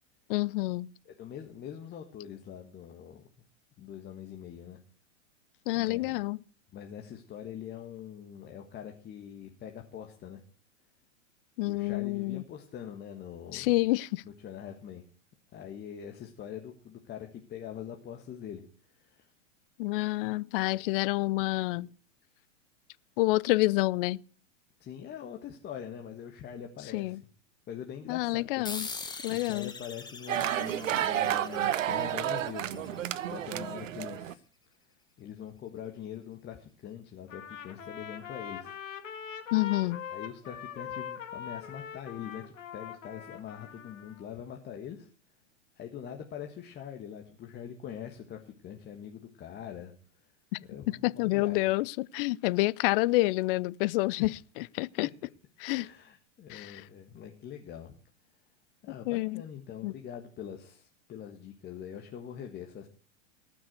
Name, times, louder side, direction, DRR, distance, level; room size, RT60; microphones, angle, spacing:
voice 1, 0.3-0.9 5.7-6.4 11.6-12.4 13.5-14.2 19.8-21.9 23.2-24.2 26.9-27.2 28.1-28.9 29.2-29.7 39.5-40.0 51.0-55.1 55.6-55.9 56.5-56.8 59.1-59.4 59.8-59.9, left 21 dB, 45° left, 0.6 m, -28 dB
voice 2, 1.0-3.2 3.8-4.8 5.7-6.2 6.7-10.4 11.6-13.7 14.2-15.0 15.5-18.6 18.9-19.3 20.7-20.8 24.8-27.2 27.7-28.8 29.3-34.4 35.2-38.8 40.1-45.1 45.7-49.9 50.6-51.7 54.2-54.3 55.7-57.9 58.8-62.9, left 9 dB, 25° left, 1.6 m, -43 dB
sound 1, 28.6-33.6, left 4 dB, 10° left, 1.6 m, -43 dB
sound 2, 30.3-34.3, right 11 dB, 80° right, 0.9 m, -31 dB
Trumpet, 37.3-44.2, left 8 dB, 80° left, 2.3 m, -42 dB
19.0 x 6.3 x 7.9 m
hypercardioid pair, 115°, 38 cm